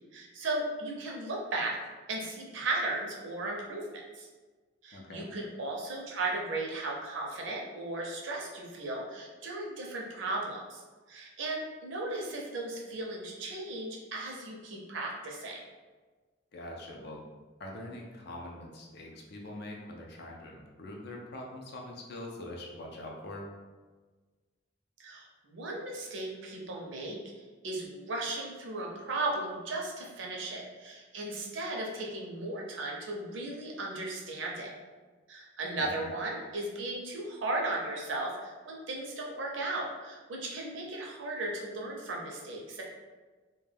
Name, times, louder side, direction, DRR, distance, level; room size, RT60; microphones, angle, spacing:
voice 1, 0.1-1.8 2.1-4.3 4.8-10.8 11.1-15.6 25.0-27.2 27.6-34.7 35.3-42.8, right 2 dB, 70° right, -1 dB, 0.5 m, -36 dB
voice 2, 4.9-5.3 16.5-17.2 17.6-23.4 35.8-36.1, left 1 dB, 55° left, 0 dB, 0.5 m, -43 dB
2.2 x 2.2 x 3.3 m, 1.4 s
head